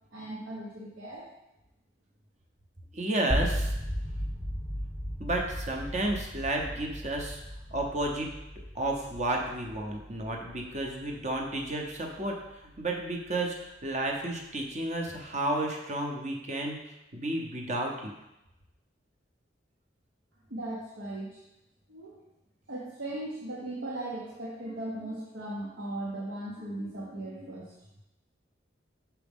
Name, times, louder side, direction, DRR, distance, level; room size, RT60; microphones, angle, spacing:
voice 1, 0.1-1.3 20.5-21.4 21.9-22.2 22.7-27.6, right 1 dB, 80° right, -6 dB, 1.0 m, -38 dB
voice 2, 2.9-3.7 5.2-7.4 7.7-8.3 8.7-13.6 13.8-16.8 17.1-18.1, right 1 dB, 40° right, 1 dB, 0.8 m, -32 dB
sound 1, 3.3-13.3, equal, ahead, 1.1 m, -36 dB
5.9 x 4.7 x 3.6 m, 0.92 s
head